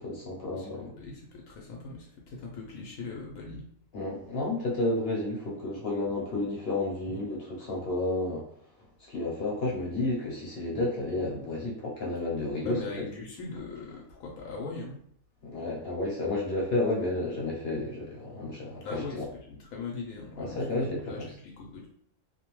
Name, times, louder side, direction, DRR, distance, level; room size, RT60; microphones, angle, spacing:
voice 1, 0.0-0.9 3.9-8.5 9.1-12.8 15.4-19.2 20.4-21.3, left 2 dB, 55° left, -3 dB, 0.8 m, -31 dB
voice 2, 0.5-3.6 12.6-15.0 18.8-21.9, left 3 dB, 85° left, -2 dB, 1.0 m, -40 dB
2.5 x 2.1 x 3.0 m, 0.65 s
omnidirectional pair, 1.4 m